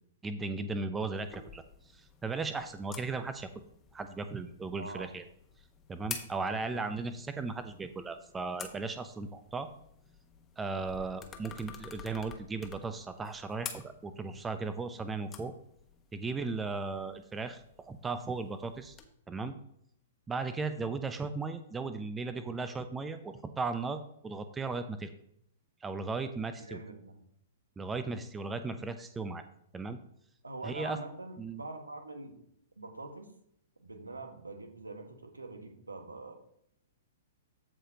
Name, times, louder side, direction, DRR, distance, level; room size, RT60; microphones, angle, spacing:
voice 1, 0.2-1.6 1.9-3.5 3.9-5.2 5.9-9.7 10.6-15.5 16.1-19.0 19.3-19.6 20.3-25.1 25.8-26.8 27.8-29.4 29.7-30.0 30.6-31.0 31.4-31.6, right 4 dB, 15° right, 10 dB, 0.6 m, -36 dB
sound 1, 1.2-19.0, left 6 dB, 20° left, 1.2 m, -50 dB
voice 2, 4.8-5.1 6.5-6.8 26.6-27.2 30.4-32.4 32.8-33.3 33.8-36.3, right 2 dB, 85° right, 5 dB, 1.5 m, -44 dB
15.0 x 5.0 x 2.8 m, 0.72 s
figure-of-eight pair, 110°, 0 cm